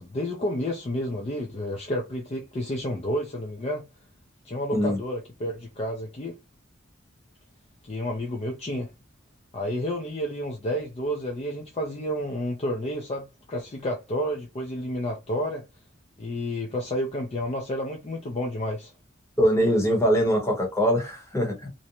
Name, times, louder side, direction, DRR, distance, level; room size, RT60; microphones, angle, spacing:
voice 1, 0.0-3.8 4.5-6.3 7.8-8.9 9.5-15.6 16.2-18.9, equal, 30° left, 0.4 m, -30 dB
voice 2, 19.4-21.7, equal, 15° left, 0.9 m, -22 dB
2.6 x 2.1 x 2.8 m
head